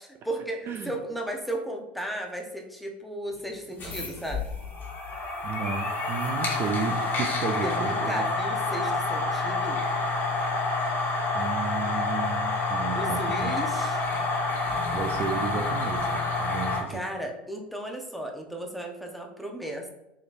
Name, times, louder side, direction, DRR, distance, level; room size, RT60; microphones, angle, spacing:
voice 1, 0.0-4.4 7.6-9.8 12.9-14.0 16.9-19.9, right 1 dB, ahead, 1 dB, 0.8 m, -35 dB
sound 1, 3.7-16.8, left 3 dB, 35° left, 1.4 m, -28 dB
voice 2, 5.4-8.3 11.3-13.6 14.9-17.0, right 6 dB, 45° right, 6 dB, 0.4 m, -33 dB
5.0 x 3.1 x 2.5 m, 0.89 s
hypercardioid pair, 90°, 6 cm